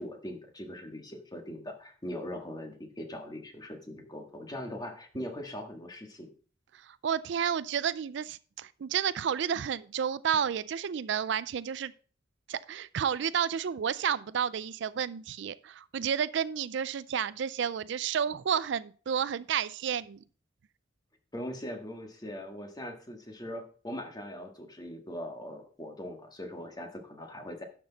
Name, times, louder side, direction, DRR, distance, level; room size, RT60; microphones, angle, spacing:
voice 1, 0.0-6.3 21.3-27.6, left 1 dB, 20° left, 1.6 m, -41 dB
voice 2, 6.8-11.9 12.5-20.2, right 8 dB, 70° right, 0.4 m, -31 dB
12.0 x 6.1 x 4.0 m
head